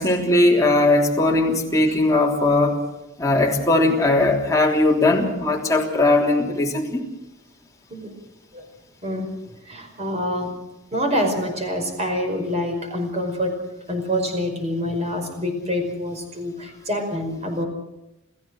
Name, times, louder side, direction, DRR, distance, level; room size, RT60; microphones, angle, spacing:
voice 1, 0.0-2.8 3.2-7.0, left 2 dB, 15° left, -1 dB, 3.4 m, -19 dB
voice 2, 9.6-10.5 10.9-13.6 13.9-17.7, equal, 30° right, 4 dB, 5.3 m, -26 dB
29.0 x 15.5 x 6.3 m, 0.95 s
head